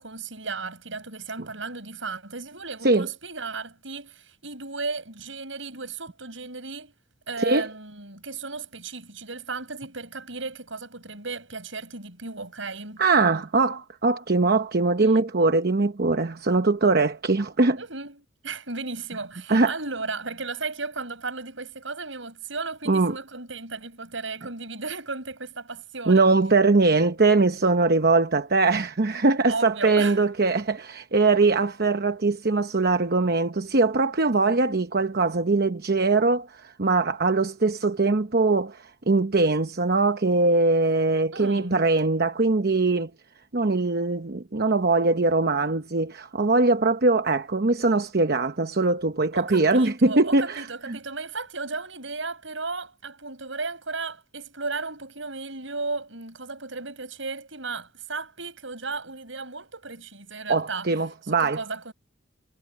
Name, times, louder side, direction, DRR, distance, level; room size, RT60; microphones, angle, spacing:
voice 1, 0.0-6.9 7.3-13.0 15.0-15.2 17.8-26.2 29.5-30.2 41.3-41.8 49.3-60.9 61.3-61.9, right 3 dB, 75° right, 7.5 m, -35 dB
voice 2, 7.4-7.7 13.0-17.8 19.5-19.7 22.9-23.2 26.1-43.1 43.5-51.0 60.5-61.6, right 3 dB, 50° right, 0.9 m, -22 dB
head